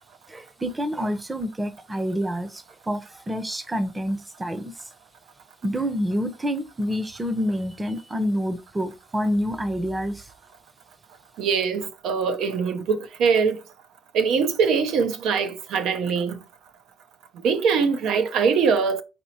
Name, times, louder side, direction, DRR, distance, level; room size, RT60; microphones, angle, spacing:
voice 1, 0.3-4.9 5.6-10.3, equal, 15° right, 0.7 m, -28 dB
voice 2, 11.4-13.6 14.1-16.4 17.4-19.0, right 5 dB, 85° right, 0.6 m, -22 dB
4.3 x 4.1 x 2.8 m
cardioid pair, 90°, 0 cm